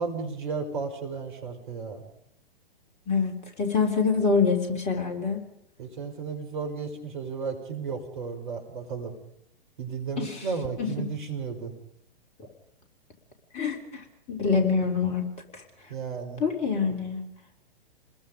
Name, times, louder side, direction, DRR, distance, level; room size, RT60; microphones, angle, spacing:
voice 1, 0.0-2.0 5.8-9.1 9.8-11.7 15.9-16.4, right 5 dB, 55° right, 5 dB, 5.4 m, -34 dB
voice 2, 3.1-5.4 10.2-10.5 10.8-10.9 13.5-15.3 15.5-15.6 16.4-17.2, left 5 dB, 20° left, 3 dB, 3.4 m, -25 dB
28.0 x 21.0 x 5.2 m, 0.75 s
figure-of-eight pair, 115°, 29 cm